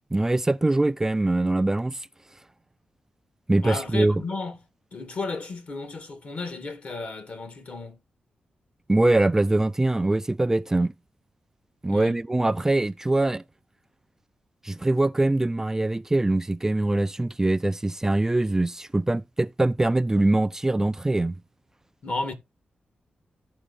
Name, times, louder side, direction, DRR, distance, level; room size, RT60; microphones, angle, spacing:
voice 1, 0.1-2.1 3.5-4.2 8.9-10.9 11.8-13.4 14.6-21.3, right 2 dB, 15° right, 0.3 m, -23 dB
voice 2, 3.6-4.6 4.9-8.0 11.9-12.2 22.0-22.3, left 3 dB, 50° left, 2.0 m, -33 dB
15.0 x 5.4 x 2.6 m
cardioid pair, 90°, 3 cm